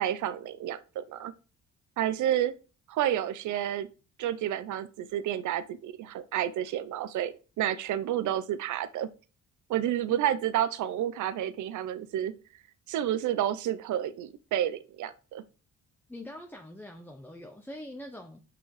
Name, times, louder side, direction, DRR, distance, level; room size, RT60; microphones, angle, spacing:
voice 1, 0.0-1.3 2.0-2.5 2.9-3.9 4.2-9.1 9.7-12.3 12.9-15.4, right 11 dB, 75° right, 0.8 m, -30 dB
voice 2, 16.1-18.4, left 1 dB, 5° left, 1.0 m, -43 dB
6.2 x 6.0 x 4.9 m
cardioid pair, 90°, 30 cm